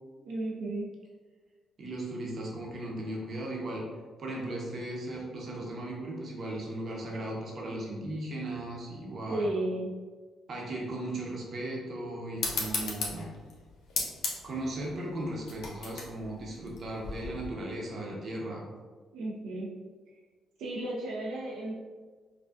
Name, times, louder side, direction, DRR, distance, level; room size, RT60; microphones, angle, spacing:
voice 1, 0.2-0.9 9.3-10.0 19.1-19.7 20.1-20.2 20.6-21.7, right 1 dB, 85° right, -4 dB, 0.7 m, -33 dB
voice 2, 1.8-3.8 4.2-9.5 10.5-13.3 14.4-18.6, right 1 dB, 50° right, -2 dB, 0.9 m, -37 dB
sound 1, 12.4-17.5, left 4 dB, 75° left, 0.8 m, -36 dB
4.8 x 2.4 x 2.4 m, 1.4 s
cardioid pair, 90°, 0 cm